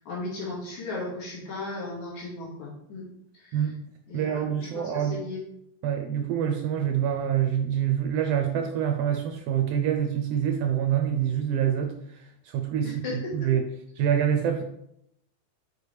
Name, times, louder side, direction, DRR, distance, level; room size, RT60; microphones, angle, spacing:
voice 1, 0.0-3.1 3.3-3.6 4.1-5.4 12.8-13.5, left 2 dB, 75° left, -5 dB, 3.4 m, -36 dB
voice 2, 4.1-5.2 5.8-11.9 12.5-13.6 14.0-14.6, right 9 dB, 80° right, 4 dB, 1.4 m, -26 dB
6.9 x 4.3 x 3.3 m, 0.76 s
omnidirectional pair, 3.3 m